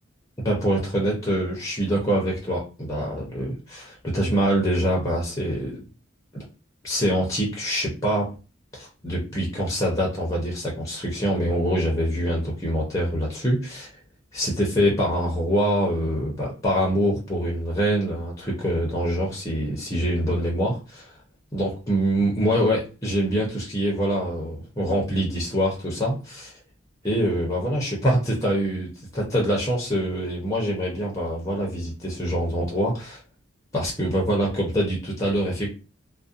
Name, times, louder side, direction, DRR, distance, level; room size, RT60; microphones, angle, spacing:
voice 1, 0.4-5.9 6.3-6.4 6.8-8.3 8.7-13.9 14.3-21.1 21.5-26.5 27.0-33.2 33.7-35.7, equal, 15° left, -2 dB, 0.6 m, -25 dB
2.6 x 2.1 x 2.4 m, 0.32 s
head